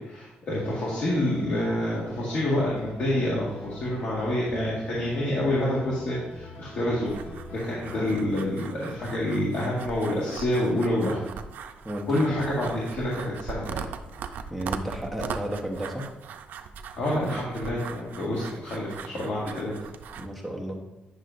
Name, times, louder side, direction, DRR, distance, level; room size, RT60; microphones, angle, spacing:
voice 1, 0.0-7.1 7.5-11.2 12.1-13.9 17.0-19.7, left 1 dB, 60° left, -5 dB, 1.7 m, -27 dB
sound 1, 0.6-8.2, left 1 dB, 90° left, 2.0 m, -43 dB
sound 2, 7.1-20.3, right 6 dB, 75° right, 0.5 m, -40 dB
voice 2, 14.5-16.1 19.1-19.2 20.2-20.8, equal, ahead, 1 dB, 1.1 m, -33 dB
9.6 x 6.4 x 2.6 m, 1.1 s
cardioid pair, 155°, 3 cm